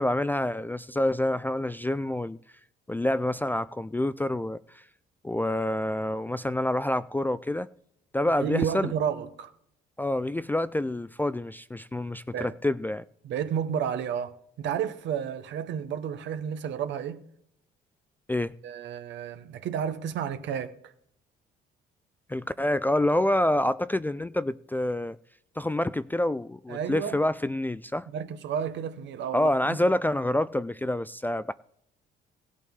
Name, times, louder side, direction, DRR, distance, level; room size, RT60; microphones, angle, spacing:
voice 1, 0.0-2.4 2.9-4.8 5.2-7.7 8.1-8.9 10.0-13.0 18.3-18.5 22.3-25.2 25.6-28.1 29.3-31.5, left 1 dB, 10° left, 0.3 m, -27 dB
voice 2, 8.4-9.5 12.3-12.6 13.2-17.2 18.6-20.9 26.7-27.2 28.1-29.8, right 8 dB, 70° right, 1.0 m, -31 dB
16.5 x 8.3 x 3.7 m
supercardioid pair, 70°, 19 cm